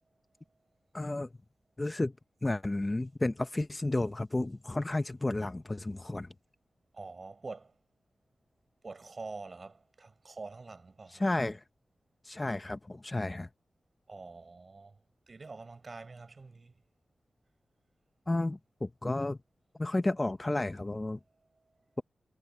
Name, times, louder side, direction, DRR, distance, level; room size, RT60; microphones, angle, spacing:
voice 1, 0.9-1.3 1.8-2.1 2.4-6.3 11.1-11.6 12.3-13.5 18.3-19.4 19.8-21.2, left 2 dB, 20° left, 0.6 m, -32 dB
voice 2, 6.9-7.7 8.8-11.2 14.1-14.9 15.3-16.7, right 3 dB, 40° right, 7.1 m, -45 dB
wide cardioid pair, 110°, 0 cm